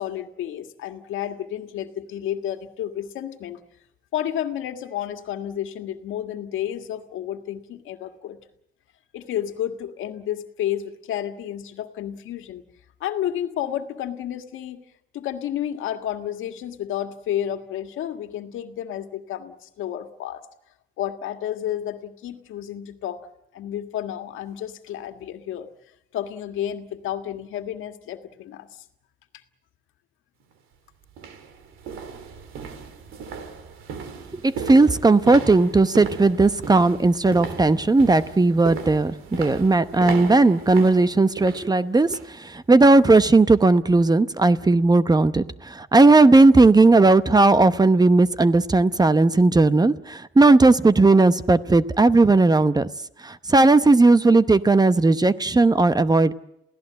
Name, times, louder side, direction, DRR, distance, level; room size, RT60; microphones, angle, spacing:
voice 1, 0.0-3.6 4.1-8.4 9.1-12.6 13.0-14.8 15.1-20.4 21.0-23.2 23.5-25.7 26.1-28.7, left 11 dB, 85° left, 6 dB, 1.8 m, -31 dB
sound 1, 30.4-30.5 31.1-42.4 42.7-43.0 43.4-43.5, right 6 dB, 85° right, 3.1 m, -36 dB
voice 2, 34.3-52.9 53.2-56.3, right 3 dB, 20° right, 13 dB, 0.9 m, -17 dB
28.5 x 17.0 x 7.6 m, 0.82 s
cardioid pair, 90°, 20 cm